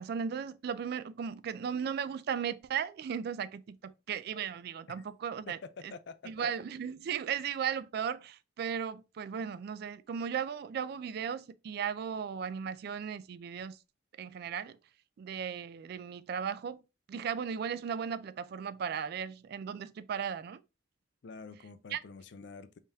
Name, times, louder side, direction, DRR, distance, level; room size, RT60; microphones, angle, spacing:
voice 1, 0.0-5.6 5.8-5.9 6.3-13.8 14.2-14.8 15.2-16.8 17.1-20.6 21.9-22.0, right 7 dB, 60° right, 0.3 m, -36 dB
voice 2, 5.5-6.5 21.2-22.8, left 4 dB, 65° left, 0.4 m, -47 dB
3.5 x 2.8 x 3.4 m
head